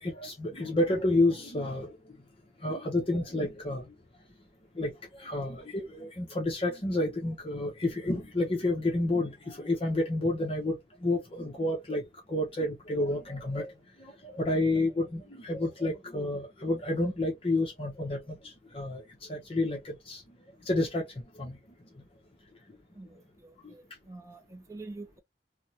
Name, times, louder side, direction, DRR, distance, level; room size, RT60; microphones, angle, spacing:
voice 1, 0.0-1.9 2.6-3.9 4.8-13.7 14.0-19.0 19.3-20.2 20.7-21.0 21.4-21.6, left 2 dB, 35° left, 0.8 m, -30 dB
voice 2, 22.9-25.2, right 2 dB, 20° right, 0.5 m, -46 dB
3.4 x 2.0 x 2.8 m
head